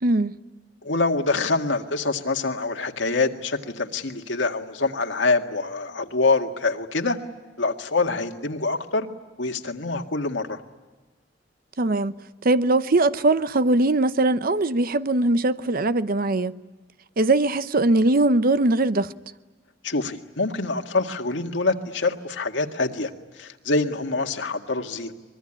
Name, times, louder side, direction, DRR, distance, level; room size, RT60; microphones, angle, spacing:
voice 1, 0.0-0.4 11.8-12.1 12.4-16.6 17.2-19.1, right 2 dB, 50° right, 0.8 m, -21 dB
voice 2, 0.8-7.2 7.6-9.1 9.4-10.6 19.8-23.1 23.4-25.1, left 3 dB, 90° left, 1.9 m, -25 dB
24.0 x 22.0 x 10.0 m
head